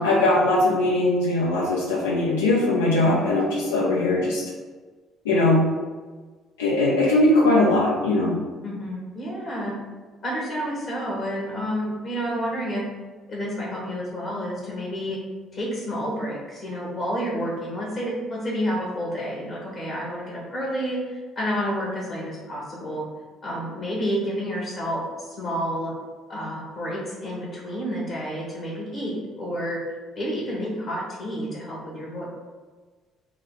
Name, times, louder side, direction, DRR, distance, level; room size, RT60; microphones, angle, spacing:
voice 1, 0.0-4.4 5.2-5.6 6.6-8.3, left 2 dB, 90° left, -6 dB, 0.5 m, -20 dB
voice 2, 8.6-9.7 10.2-12.8 13.3-15.2 15.5-23.0 23.4-25.9 26.3-29.8 30.1-32.2, equal, 55° left, -4 dB, 1.2 m, -30 dB
3.6 x 2.1 x 3.7 m, 1.4 s
hypercardioid pair, 55°, 0 cm